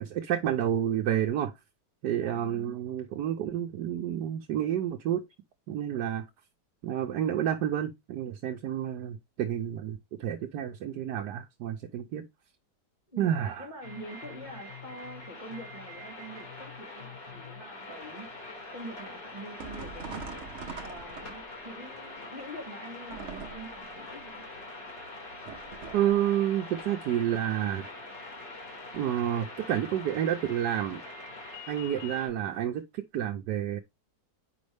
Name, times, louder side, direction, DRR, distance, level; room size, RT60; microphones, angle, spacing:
voice 1, 0.0-1.5 2.0-5.2 5.7-6.2 6.8-12.2 13.2-13.7 25.9-27.9 28.9-31.0 31.7-33.8, right 10 dB, 70° right, 1.3 m, -29 dB
voice 2, 2.1-2.7 13.1-18.3 18.7-20.4 20.8-24.5, right 1 dB, 25° right, 2.4 m, -45 dB
sound 1, 13.8-32.3, left 2 dB, 80° left, 3.8 m, -44 dB
sound 2, 19.6-21.7 23.1-23.9 25.5-26.2, right 5 dB, 45° right, 1.1 m, -42 dB
7.9 x 5.3 x 3.4 m
omnidirectional pair, 1.9 m